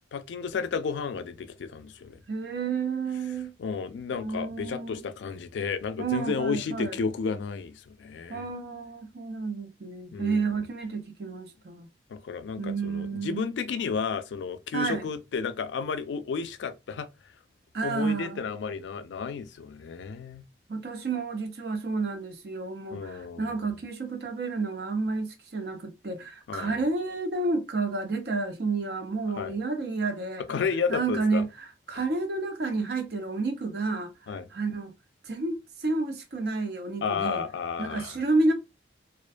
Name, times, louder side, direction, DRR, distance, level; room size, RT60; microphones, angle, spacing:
voice 1, 0.1-2.2 3.6-8.4 10.1-10.6 12.1-17.1 17.8-20.4 22.9-23.6 26.5-26.8 29.3-29.6 30.5-31.4 34.3-34.5 37.0-38.2, left 5 dB, 85° left, 0.3 m, -32 dB
voice 2, 2.3-3.5 4.2-5.0 6.0-7.0 8.3-11.9 12.6-13.4 14.7-15.1 17.7-18.4 20.7-30.4 30.9-31.5 31.9-34.9 35.2-37.4 37.8-38.5, right 3 dB, 60° right, 0.5 m, -30 dB
2.4 x 2.1 x 2.4 m
head